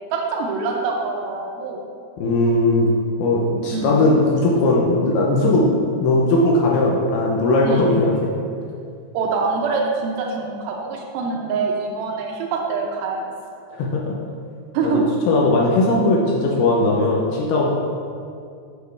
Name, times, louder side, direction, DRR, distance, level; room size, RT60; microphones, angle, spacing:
voice 1, 0.1-1.8 3.7-3.9 7.7-7.9 9.1-13.2 14.7-15.0, right 4 dB, 85° right, -1 dB, 2.2 m, -24 dB
voice 2, 2.2-2.9 3.2-5.7 6.0-8.1 13.7-14.1 14.8-15.0 15.3-17.7, left 2 dB, 80° left, -3 dB, 2.2 m, -18 dB
6.8 x 6.8 x 3.2 m, 2.4 s
omnidirectional pair, 5.0 m